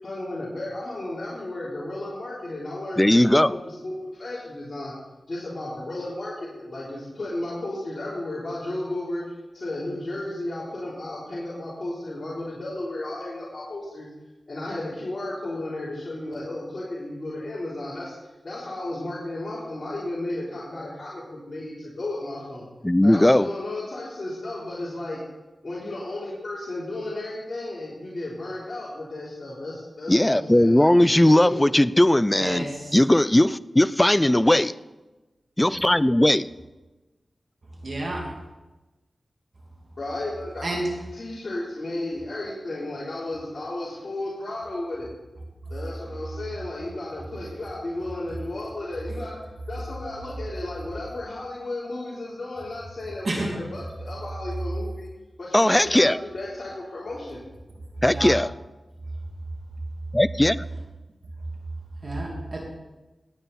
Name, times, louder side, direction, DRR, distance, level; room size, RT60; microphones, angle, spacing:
voice 1, 0.0-5.0 5.3-9.2 9.5-14.1 14.5-18.1 18.4-22.7 23.0-25.2 25.6-31.7 40.0-40.7 41.1-45.1 45.7-49.4 49.7-55.1 55.4-57.4, left 1 dB, 50° left, -8 dB, 3.8 m, -34 dB
voice 2, 3.0-3.6 22.8-23.5 30.1-32.7 32.9-34.7 35.6-36.5 55.5-56.2 58.0-58.5 60.1-60.6, left 1 dB, 15° left, 16 dB, 0.4 m, -18 dB
voice 3, 32.3-33.0 37.8-38.3 40.6-40.9 53.2-53.5 58.1-58.3 62.0-62.6, right 2 dB, 55° right, -1 dB, 2.6 m, -29 dB
18.5 x 9.1 x 4.2 m, 1.1 s
cardioid pair, 55°, 0 cm